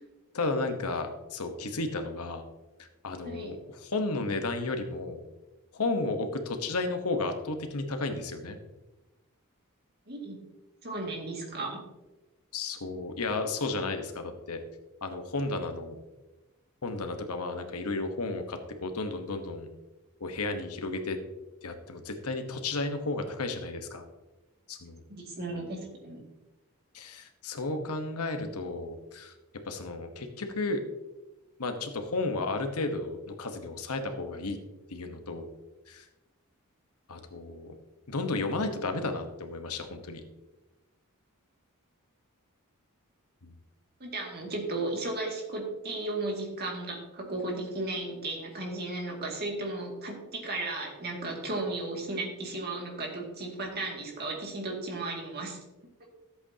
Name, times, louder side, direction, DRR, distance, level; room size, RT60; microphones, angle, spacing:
voice 1, 0.3-2.4 2.8-5.2 5.7-8.6 12.5-14.6 15.0-16.0 16.8-19.7 20.2-21.2 21.6-24.0 24.7-25.0 26.9-29.3 29.6-30.8 31.6-34.6 34.9-35.5 35.9-36.1 37.1-37.7 38.1-40.2 43.4-43.5, left 3 dB, 80° left, 6 dB, 1.2 m, -33 dB
voice 2, 3.2-3.6 10.1-10.4 10.8-11.8 25.1-26.2 44.0-55.6, right 2 dB, 45° right, 0 dB, 2.3 m, -35 dB
14.0 x 8.0 x 2.8 m, 1.1 s
head